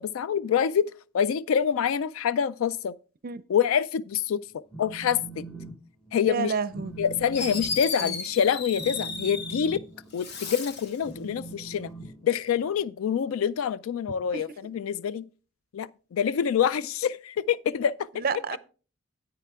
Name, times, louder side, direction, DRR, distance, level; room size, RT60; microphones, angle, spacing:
voice 1, 0.0-3.0 3.5-5.4 6.1-6.5 7.0-9.8 10.1-11.9 12.2-15.3 15.7-18.4, left 8 dB, 85° left, 0.3 m, -26 dB
Telephone, 4.5-5.7 6.1-6.4 6.7-12.8, right 3 dB, 5° left, 1.1 m, -42 dB
voice 2, 6.3-6.9 8.0-8.1 14.3-14.4 18.2-18.6, right 5 dB, 45° right, 0.5 m, -29 dB
Fireworks, 6.9-7.0 7.3-9.8 10.1-11.0, left 4 dB, 55° left, 1.2 m, -34 dB
10.0 x 9.2 x 3.5 m
head